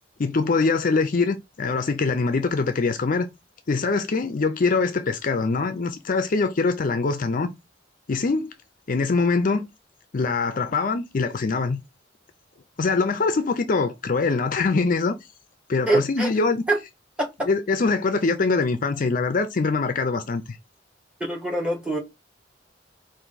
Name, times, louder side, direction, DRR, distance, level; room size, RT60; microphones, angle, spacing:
voice 1, 0.2-3.3 3.7-7.5 8.1-8.5 8.9-9.7 10.1-11.8 12.8-15.1 15.7-16.6 17.5-20.6, left 4 dB, 45° left, 0.5 m, -23 dB
voice 2, 15.9-16.3 16.7-16.8 17.2-17.3 21.2-22.0, right 1 dB, 5° right, 1.3 m, -23 dB
4.7 x 2.5 x 3.9 m
head